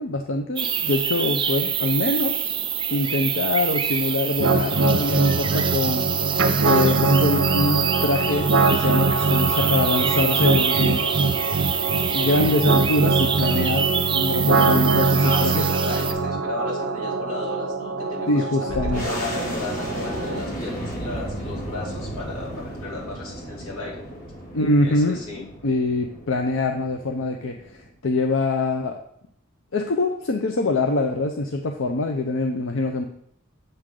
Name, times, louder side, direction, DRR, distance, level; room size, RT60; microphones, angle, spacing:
voice 1, 0.0-2.6 2.9-11.1 12.1-15.7 18.3-19.1 24.5-29.0 29.7-33.0, left 2 dB, 65° left, 4 dB, 0.6 m, -24 dB
sound 1, 0.6-16.1, right 8 dB, 25° right, 0.5 m, -26 dB
sound 2, 4.4-20.4, right 3 dB, 65° right, 0.7 m, -23 dB
voice 2, 15.2-24.2 24.8-25.5, left 2 dB, 90° left, -3 dB, 2.7 m, -34 dB
sound 3, 18.7-27.9, equal, 40° left, 2.2 m, -34 dB
7.9 x 3.8 x 6.3 m, 0.70 s
head